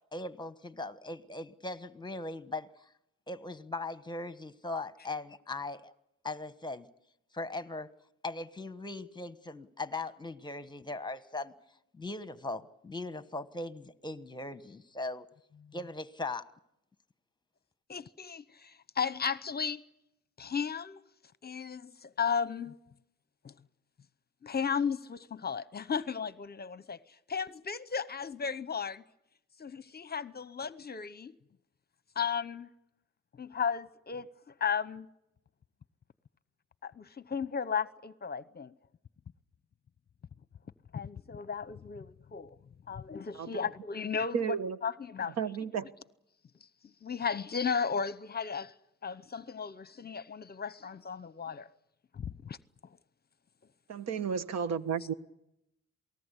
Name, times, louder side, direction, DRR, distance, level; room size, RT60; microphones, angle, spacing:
voice 1, 0.1-2.9 3.3-5.9 6.2-6.9 7.3-7.9 8.2-11.5 11.9-15.3 15.7-16.5, left 2 dB, 15° left, 1.3 m, -39 dB
voice 2, 17.9-19.8 20.4-21.0 21.4-22.8 23.4-23.5 24.4-29.0 29.6-31.3 32.1-32.7 33.4-35.1 36.8-38.7 40.9-42.6 42.9-44.6 44.8-45.4 47.0-48.7 49.0-51.7 52.1-52.6, left 6 dB, 30° left, 0.9 m, -35 dB
voice 3, 44.3-44.8 45.4-45.9 53.9-55.1, right 7 dB, 60° right, 1.2 m, -32 dB
28.0 x 19.5 x 8.3 m
cardioid pair, 90°, 30 cm